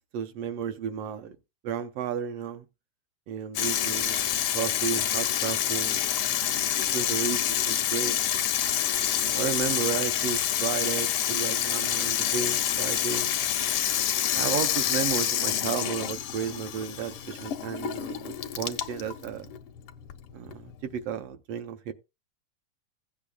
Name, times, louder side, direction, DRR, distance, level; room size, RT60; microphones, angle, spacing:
voice 1, 0.1-1.4 1.6-2.7 3.3-6.5 6.9-8.2 9.2-13.4 14.3-19.5 20.3-21.9, right 8 dB, 70° right, 1.5 m, -33 dB
Water tap faucet / Sink (filling or washing), 3.5-21.0, left 10 dB, 75° left, 1.3 m, -28 dB
15.5 x 8.6 x 2.3 m
omnidirectional pair, 3.4 m